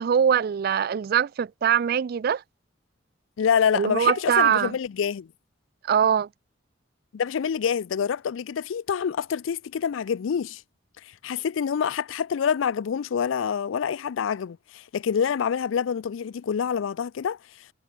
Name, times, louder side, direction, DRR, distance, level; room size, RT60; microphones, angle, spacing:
voice 1, 0.0-2.4 3.7-4.7 5.9-6.3, right 8 dB, 50° right, 0.3 m, -22 dB
voice 2, 3.4-5.3 7.1-10.6 11.0-17.4, left 7 dB, 80° left, 0.4 m, -26 dB
head